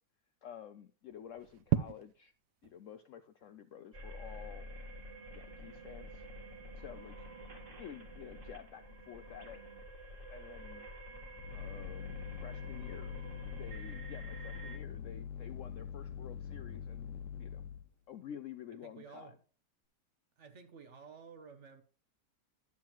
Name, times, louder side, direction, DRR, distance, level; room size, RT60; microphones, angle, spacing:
voice 1, 0.4-2.3 2.6-4.7 5.3-6.2 6.8-7.3 7.8-9.6 10.3-10.9 11.5-13.2 13.5-17.6 18.1-19.3, left 9 dB, 70° left, 0.7 m, -50 dB
sound 1, 1.1-18.2, right 12 dB, 80° right, 1.2 m, -46 dB
sound 2, 3.9-14.8, right 1 dB, 35° right, 1.3 m, -49 dB
sound 3, 11.3-17.9, left 8 dB, 90° left, 1.2 m, -44 dB
voice 2, 18.8-19.4 20.4-21.8, right 6 dB, 55° right, 0.9 m, -53 dB
11.0 x 7.4 x 3.0 m
omnidirectional pair, 1.8 m